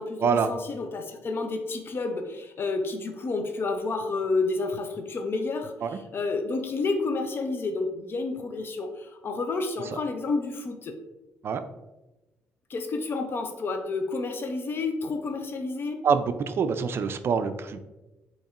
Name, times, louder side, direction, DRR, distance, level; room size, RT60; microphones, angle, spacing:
voice 1, 0.0-10.9 12.7-16.0, left 3 dB, 45° left, 5 dB, 0.5 m, -30 dB
voice 2, 16.0-17.9, right 6 dB, 50° right, 11 dB, 0.3 m, -25 dB
4.1 x 2.9 x 2.4 m, 1.0 s
supercardioid pair, 65°, 5 cm